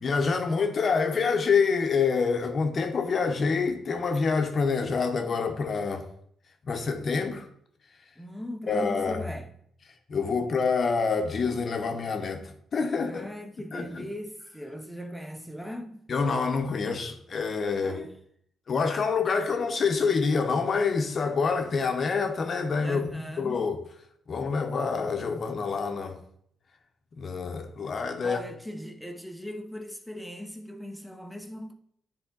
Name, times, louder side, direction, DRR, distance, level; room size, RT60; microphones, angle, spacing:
voice 1, 0.0-6.1 6.6-7.5 8.7-9.2 10.1-13.3 13.7-14.1 16.1-18.1 18.7-23.0 23.4-23.8 24.3-26.2 27.2-28.4, left 5 dB, 45° left, 0.8 m, -27 dB
voice 2, 8.2-9.5 13.0-16.1 17.7-18.1 22.8-23.7 28.2-31.7, equal, ahead, 0.7 m, -39 dB
9.6 x 3.7 x 3.9 m
cardioid pair, 90°, 0 cm